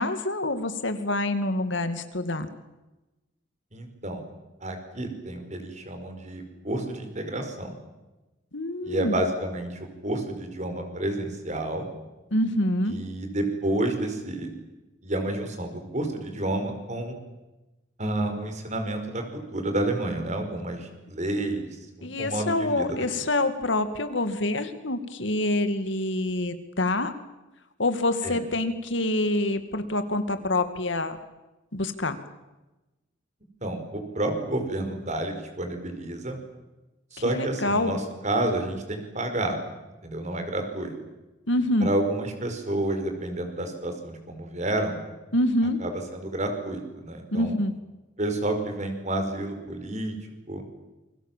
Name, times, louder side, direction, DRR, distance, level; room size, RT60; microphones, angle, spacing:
voice 1, 0.0-2.5 8.5-9.2 12.3-13.0 22.0-27.1 27.8-31.2 31.7-32.2 37.3-38.0 41.5-41.9 45.3-45.8 47.3-47.7, left 1 dB, 75° left, 9 dB, 2.3 m, -26 dB
voice 2, 3.7-4.2 4.6-7.8 8.8-11.9 12.9-14.5 15.0-17.2 18.0-21.7 22.0-23.1 28.2-28.4 33.6-36.4 37.1-39.6 40.0-40.9 41.8-45.0 45.8-47.5 48.2-50.2 50.5-50.6, right 1 dB, 40° right, 5 dB, 5.2 m, -30 dB
28.5 x 23.0 x 7.5 m, 1.0 s
head